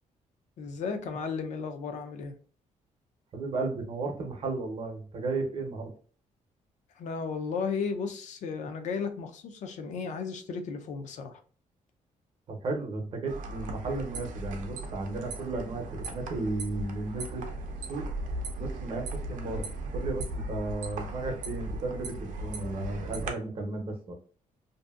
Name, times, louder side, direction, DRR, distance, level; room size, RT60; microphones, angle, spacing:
voice 1, 0.6-2.3 7.0-11.4, left 5 dB, 65° left, 6 dB, 0.5 m, -34 dB
voice 2, 3.3-5.9 12.5-17.4 17.9-18.1 18.6-19.6 19.9-24.1, right 3 dB, 45° right, 3 dB, 0.6 m, -34 dB
sound 1, 13.3-23.3, right 1 dB, 80° right, 0.5 m, -37 dB
2.6 x 2.5 x 2.3 m, 0.42 s
cardioid pair, 175°, 13 cm